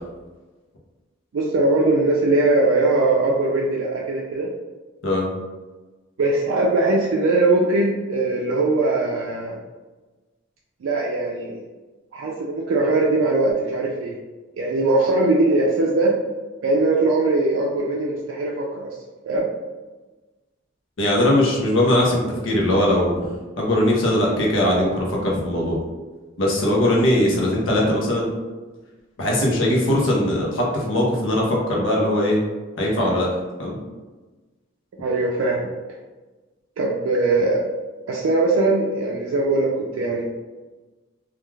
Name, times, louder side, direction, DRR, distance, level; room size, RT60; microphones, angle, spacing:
voice 1, 1.3-4.5 6.2-9.6 10.8-11.6 12.1-14.2 14.6-16.1 16.6-18.9 19.3-19.5 35.0-35.7 36.8-37.6 38.1-40.2, right 2 dB, 80° right, -3 dB, 0.4 m, -20 dB
voice 2, 21.0-23.1 23.6-25.8 26.4-28.3 29.2-32.4 32.8-33.3 33.6-33.8, left 1 dB, 70° left, -2 dB, 0.7 m, -20 dB
2.3 x 2.3 x 3.1 m, 1.2 s
head